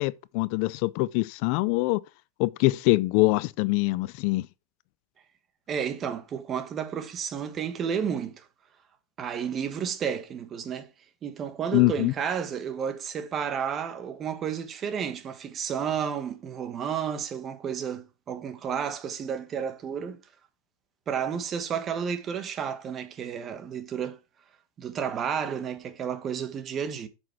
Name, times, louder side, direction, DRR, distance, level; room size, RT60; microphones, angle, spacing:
voice 1, 0.0-2.0 2.4-4.5 11.7-12.1, left 22 dB, 55° left, 0.4 m, -24 dB
voice 2, 5.7-8.4 9.2-10.9 11.2-20.2 21.1-24.2 24.8-27.1, right 7 dB, 25° right, 1.4 m, -31 dB
7.6 x 6.2 x 4.6 m
supercardioid pair, 135°, 0 cm